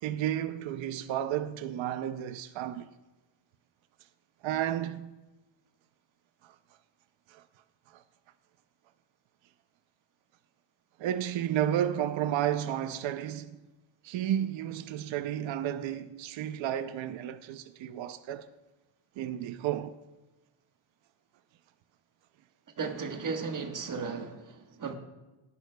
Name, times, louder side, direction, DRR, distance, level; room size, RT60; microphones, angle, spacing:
voice 1, 0.0-2.9 4.4-5.1 6.4-6.6 7.3-7.4 7.9-8.0 11.0-13.6 14.0-18.5 19.2-20.0, right 11 dB, 65° right, 0.6 m, -32 dB
voice 2, 22.8-24.9, right 5 dB, 40° right, 1.3 m, -35 dB
18.0 x 11.0 x 2.2 m
cardioid pair, 155°, 50 cm